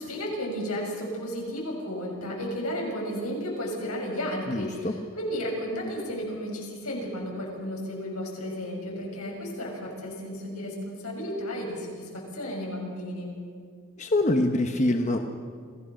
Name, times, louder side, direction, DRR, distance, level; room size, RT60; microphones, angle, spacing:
voice 1, 0.0-13.3, equal, 80° left, -1 dB, 6.8 m, -33 dB
voice 2, 4.5-4.9 14.0-15.2, left 1 dB, 30° left, 5 dB, 1.0 m, -24 dB
26.5 x 17.0 x 6.4 m, 2.1 s
head